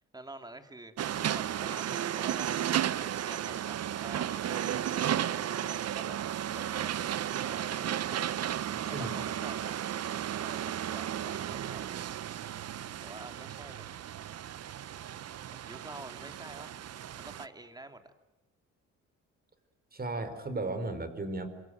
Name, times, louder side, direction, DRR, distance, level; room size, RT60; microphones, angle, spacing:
voice 1, 0.1-0.9 1.3-6.2 6.5-8.4 8.9-9.8 10.4-11.9 13.0-13.9 15.5-16.7 17.2-18.1, right 2 dB, 15° right, 7 dB, 2.9 m, -48 dB
sound 1, 1.0-17.5, right 10 dB, 55° right, 0.9 m, -34 dB
voice 2, 19.9-21.5, right 2 dB, 30° right, 10 dB, 4.7 m, -35 dB
26.0 x 24.0 x 9.3 m, 0.96 s
cardioid pair, 90°, 30 cm